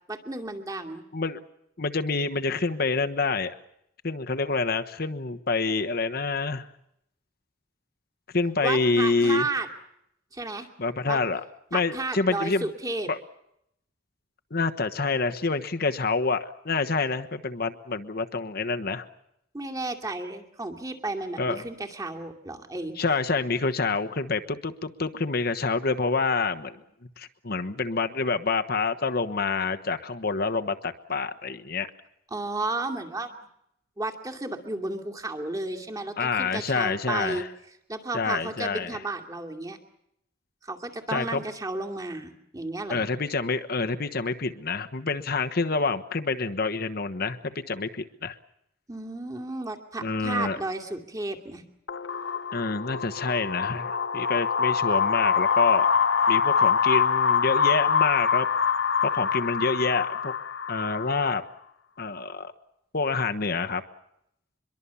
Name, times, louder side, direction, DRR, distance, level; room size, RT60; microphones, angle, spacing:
voice 1, 0.1-1.0 8.6-9.7 10.3-10.7 11.1-11.2 11.7-13.1 19.5-23.0 32.3-33.3 34.0-37.4 37.9-39.8 40.6-43.1 48.9-51.6, right 2 dB, 20° right, 4 dB, 2.5 m, -33 dB
voice 2, 1.8-3.5 4.0-6.7 8.3-9.5 10.8-11.4 11.7-12.7 13.1-13.2 14.5-19.0 21.4-21.6 23.0-26.8 27.2-31.9 36.2-37.5 38.1-39.0 41.1-41.4 42.9-48.4 50.0-50.6 52.5-55.9 56.3-58.5 59.0-60.3 60.7-61.4 62.0-62.5 62.9-63.8, left 4 dB, 55° left, 7 dB, 1.2 m, -27 dB
sound 1, 51.9-61.4, left 6 dB, 80° left, 1.0 m, -24 dB
24.5 x 22.5 x 7.1 m, 0.76 s
head